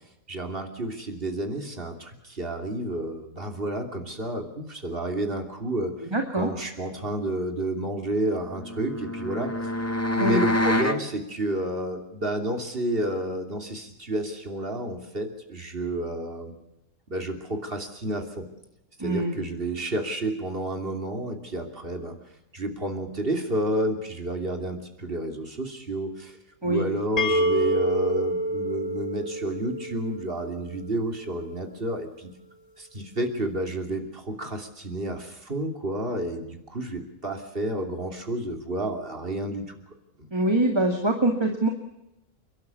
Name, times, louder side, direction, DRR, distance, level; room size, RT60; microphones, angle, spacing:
voice 1, 0.3-6.1 6.3-9.5 10.2-16.5 17.1-18.5 19.0-22.2 22.5-26.4 26.6-32.3 32.8-39.7, right 1 dB, 40° right, 4 dB, 3.2 m, -30 dB
voice 2, 6.1-6.5 10.2-10.4 19.0-19.4 26.6-26.8 40.3-41.7, right 2 dB, 20° right, 3 dB, 2.2 m, -24 dB
sound 1, 8.4-11.0, left 1 dB, 10° left, 1.4 m, -26 dB
sound 2, 27.2-30.9, right 1 dB, 25° left, 2.0 m, -27 dB
29.5 x 12.0 x 8.4 m, 0.90 s
omnidirectional pair, 1.5 m